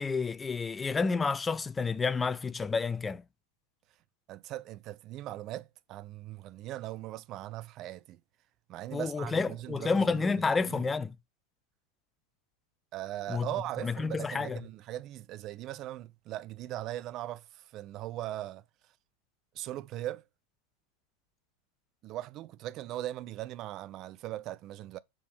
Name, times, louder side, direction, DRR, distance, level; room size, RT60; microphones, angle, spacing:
voice 1, 0.0-3.2 8.9-11.2 13.3-13.5 13.8-14.6, left 4 dB, 15° left, 0.5 m, -30 dB
voice 2, 4.3-8.2 8.7-10.8 12.9-18.6 19.5-20.2 22.0-25.0, right 14 dB, 35° right, 0.5 m, -39 dB
6.4 x 4.8 x 4.9 m
figure-of-eight pair, 90°, 0 cm